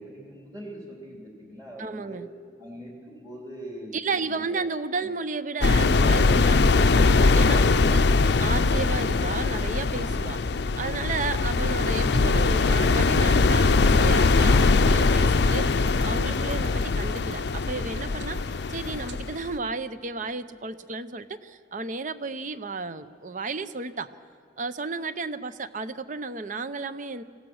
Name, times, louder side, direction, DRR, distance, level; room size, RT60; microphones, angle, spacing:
voice 1, 0.0-2.2 2.6-4.7, right 1 dB, 20° right, -2 dB, 3.4 m, -42 dB
voice 2, 1.8-2.3 3.9-10.5 10.8-24.1 24.6-27.2, right 3 dB, 45° right, 13 dB, 0.7 m, -33 dB
sound 1, 5.6-19.6, left 3 dB, 60° left, 0.5 m, -21 dB
sound 2, 13.8-19.2, right 2 dB, 80° right, 1.5 m, -43 dB
25.5 x 16.0 x 6.4 m, 2.3 s
head